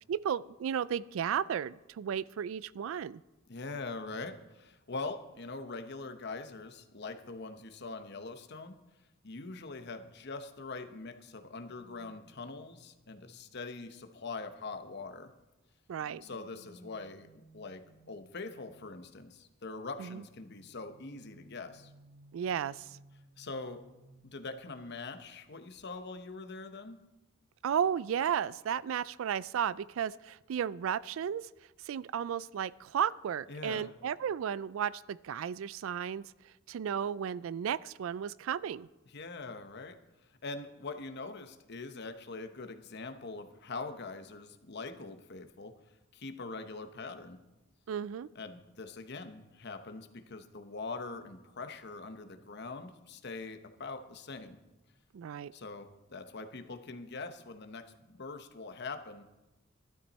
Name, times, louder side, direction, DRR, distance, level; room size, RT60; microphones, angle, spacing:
voice 1, 0.1-3.2 15.9-16.2 20.0-20.2 22.3-23.0 27.6-31.5 31.9-36.3 36.7-38.9 47.9-48.3 55.1-55.5, right 8 dB, 70° right, 21 dB, 0.3 m, -34 dB
voice 2, 3.5-8.8 9.2-15.3 16.2-21.9 23.4-23.8 24.2-27.0 33.5-33.9 39.1-40.0 40.4-45.7 46.1-47.4 48.3-54.6 55.5-59.2, left 3 dB, 55° left, 8 dB, 1.0 m, -43 dB
sound 1, 11.7-15.4 16.0-19.2 20.3-25.5 25.8-26.0, equal, 40° right, 1.0 m, -61 dB
13.0 x 12.0 x 4.2 m, 1.0 s
head